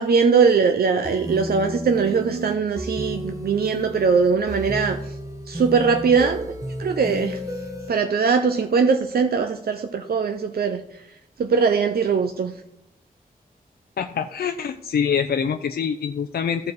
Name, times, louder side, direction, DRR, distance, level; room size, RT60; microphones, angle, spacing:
voice 1, 0.0-5.0 5.5-6.5 6.8-7.4 7.9-10.8 11.4-12.5, right 5 dB, 80° right, 6 dB, 0.7 m, -21 dB
sound 1, 1.0-7.9, right 1 dB, 20° right, 1.1 m, -32 dB
voice 2, 14.0-16.7, left 7 dB, 90° left, 7 dB, 0.5 m, -25 dB
14.5 x 4.8 x 4.7 m, 0.80 s
wide cardioid pair, 115°, 16 cm